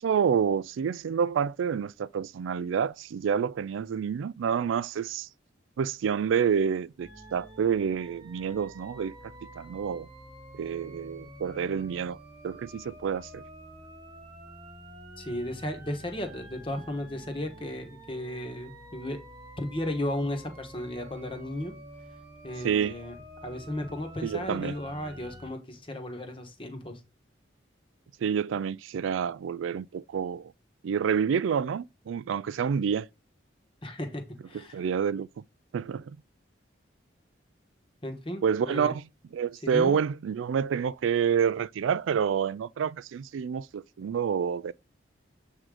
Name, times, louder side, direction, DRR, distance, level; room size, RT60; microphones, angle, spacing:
voice 1, 0.0-5.3 5.8-9.1 9.6-10.1 10.5-12.2 12.4-13.4 22.6-23.0 24.2-24.8 28.2-30.5 30.8-33.1 34.7-35.4 35.7-36.2 38.4-39.0 39.3-44.7, right 7 dB, 80° right, 0.3 m, -28 dB
sound 1, 7.0-25.5, right 1 dB, 25° right, 1.5 m, -48 dB
voice 2, 15.2-19.2 19.6-21.7 22.4-23.2 23.4-27.0 33.8-34.8 38.0-38.9 39.6-40.0, left 1 dB, 25° left, 1.1 m, -35 dB
7.6 x 3.8 x 4.8 m
head